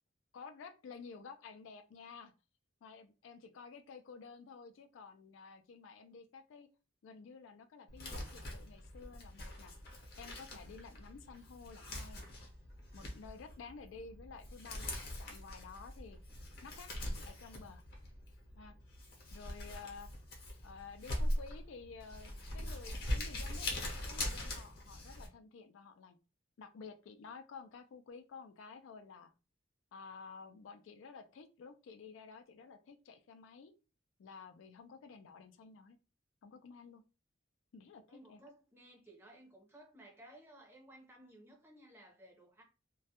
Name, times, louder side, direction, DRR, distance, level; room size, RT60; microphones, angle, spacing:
voice 1, 0.3-2.3 2.8-6.7 7.0-9.7 10.2-12.3 12.9-16.2 16.6-17.8 18.6-18.7 19.3-20.1 20.6-23.7 24.1-26.2 26.6-29.3 29.9-33.7 34.2-36.0 36.4-37.0 37.7-38.4, left 5 dB, 80° left, 0.3 m, -52 dB
Crumpling crinkling, 7.9-25.3, left 1 dB, 55° left, 0.8 m, -42 dB
voice 2, 38.1-42.6, right 1 dB, 10° right, 0.6 m, -58 dB
2.2 x 2.0 x 2.7 m
head